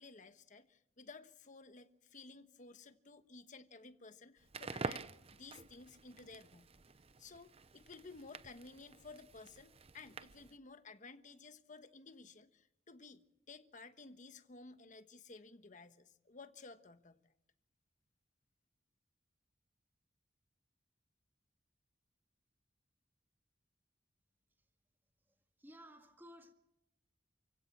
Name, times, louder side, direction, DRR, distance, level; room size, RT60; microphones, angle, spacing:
voice 1, 0.0-6.7 7.2-17.2, left 3 dB, 45° left, 1.3 m, -55 dB
Crackle, 4.4-10.6, right 4 dB, 35° right, 0.7 m, -48 dB
voice 2, 25.2-26.5, equal, 10° right, 1.7 m, -58 dB
28.5 x 16.5 x 7.3 m
head